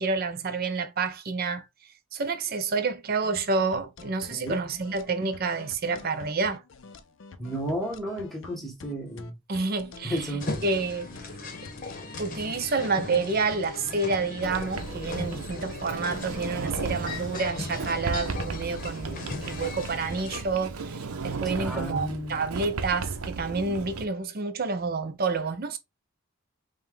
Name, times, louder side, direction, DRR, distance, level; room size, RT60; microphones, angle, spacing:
voice 1, 0.0-1.7 2.1-6.6 9.5-10.3 10.6-11.2 12.2-21.0 21.2-25.8, right 4 dB, 45° right, 0.5 m, -29 dB
sound 1, 3.2-20.6, left 4 dB, 60° left, 0.5 m, -47 dB
voice 2, 4.3-4.6 7.4-9.4 10.0-10.5 21.6-22.4, right 1 dB, ahead, 1.0 m, -33 dB
sound 2, 10.4-20.4, left 3 dB, 40° left, 0.9 m, -38 dB
Sliding door, 14.4-24.1, right 4 dB, 85° right, 0.6 m, -35 dB
5.4 x 2.2 x 3.2 m
head